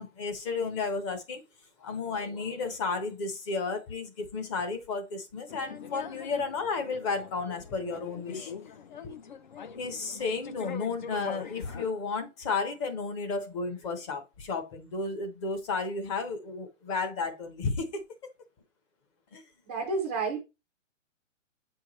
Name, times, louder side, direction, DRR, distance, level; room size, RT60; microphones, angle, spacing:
voice 1, 0.0-1.4 1.8-8.5 9.0-9.1 9.8-18.0 19.3-19.4, left 4 dB, 20° left, 0.9 m, -33 dB
sound 1, 5.5-11.9, left 7 dB, 40° left, 0.5 m, -43 dB
voice 2, 19.7-20.4, right 4 dB, 10° right, 0.5 m, -30 dB
8.2 x 4.5 x 3.1 m
hypercardioid pair, 155°, 40 cm